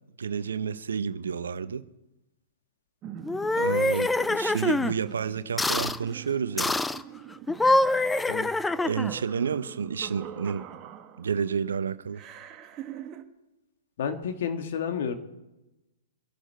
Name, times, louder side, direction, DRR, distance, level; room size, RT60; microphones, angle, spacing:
voice 1, 0.2-1.8 3.6-6.8 8.9-10.7 11.2-12.2, right 6 dB, 75° right, 0.8 m, -30 dB
sound 1, 3.0-11.6 12.1-13.2, right 9 dB, 30° right, 1.3 m, -44 dB
sound 2, 3.2-4.9 5.6-6.0 6.6-7.0 7.5-9.2, left 2 dB, 5° left, 0.5 m, -25 dB
voice 2, 14.0-15.1, left 7 dB, 55° left, 1.9 m, -30 dB
24.0 x 11.0 x 4.5 m
figure-of-eight pair, 115°, 0 cm